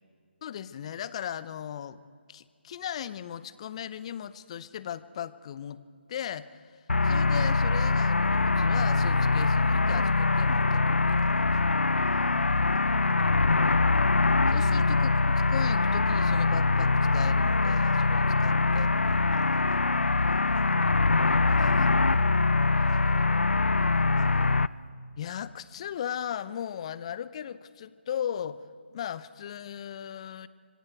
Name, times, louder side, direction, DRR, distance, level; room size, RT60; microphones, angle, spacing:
voice 1, 0.4-2.0 2.3-5.8 6.1-6.6 7.0-11.4 14.5-15.2 15.5-19.8 21.6-22.0 25.2-28.6 28.9-30.5, left 9 dB, 30° left, 16 dB, 0.7 m, -37 dB
sound 1, 6.9-24.7, left 3 dB, 80° left, 0.6 m, -23 dB
voice 2, 12.0-13.4 19.7-22.4 22.7-24.4, right 3 dB, 40° right, 2 dB, 3.6 m, -51 dB
26.0 x 22.5 x 4.7 m, 2.2 s
figure-of-eight pair, 150°, 6 cm